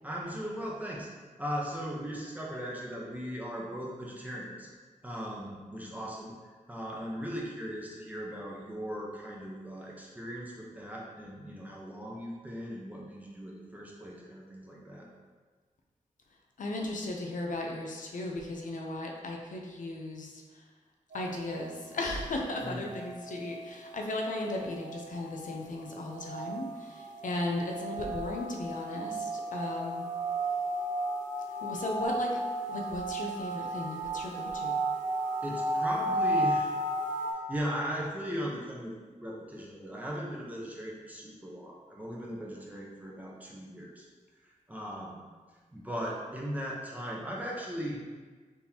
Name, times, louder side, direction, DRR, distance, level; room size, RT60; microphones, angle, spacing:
voice 1, 0.0-1.1 1.4-4.7 5.0-6.3 6.7-15.1 22.6-22.9 35.4-36.7 37.5-38.9 39.2-44.1 44.4-45.2 45.7-48.0, equal, 10° right, -4 dB, 0.8 m, -38 dB
voice 2, 16.6-20.6 21.1-30.1 31.6-32.3 32.7-34.8, left 2 dB, 75° left, 1 dB, 0.6 m, -36 dB
sound 1, 21.1-37.3, right 1 dB, 80° right, 0.8 m, -34 dB
4.2 x 3.6 x 2.8 m, 1.4 s
wide cardioid pair, 100°, 13 cm